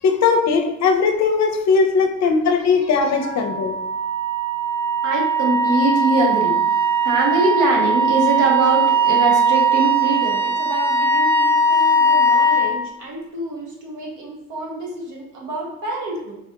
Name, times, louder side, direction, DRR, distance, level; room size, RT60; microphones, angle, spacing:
voice 1, 0.0-3.7, left 5 dB, 65° left, 5 dB, 0.6 m, -18 dB
voice 2, 2.0-2.3 3.2-3.4 5.0-6.6 7.0-16.4, right 2 dB, 75° right, -2 dB, 1.1 m, -24 dB
Wind instrument woodwind instrument, 3.3-12.7, right 2 dB, 50° right, 1.0 m, -19 dB
3.9 x 2.3 x 2.8 m, 0.86 s
cardioid pair, 90°, 30 cm